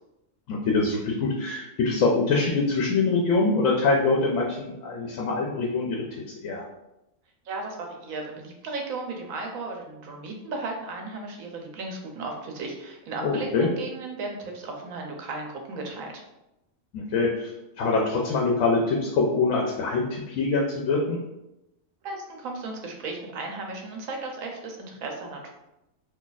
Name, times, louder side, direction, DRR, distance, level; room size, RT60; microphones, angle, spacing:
voice 1, 0.5-6.0 6.4-6.6 13.2-13.7 16.9-17.5 17.8-21.2, left 3 dB, 80° left, -2 dB, 1.0 m, -24 dB
voice 2, 7.4-16.2 22.0-25.5, right 3 dB, 85° right, 2 dB, 1.1 m, -35 dB
2.8 x 2.3 x 3.9 m, 0.90 s
omnidirectional pair, 1.4 m